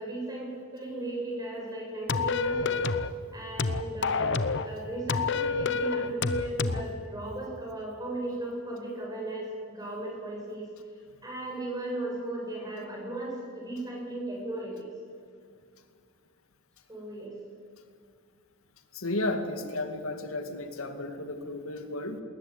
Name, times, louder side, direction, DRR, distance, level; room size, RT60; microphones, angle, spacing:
voice 1, 0.0-2.8 3.3-14.9 16.9-17.3, right 1 dB, 20° right, -2 dB, 7.6 m, -36 dB
sound 1, 2.1-3.1 3.6-4.7 5.1-6.9, left 4 dB, 55° left, 0.9 m, -28 dB
voice 2, 18.9-22.2, left 2 dB, 85° left, 6 dB, 2.2 m, -33 dB
20.5 x 19.5 x 9.8 m, 2.2 s
head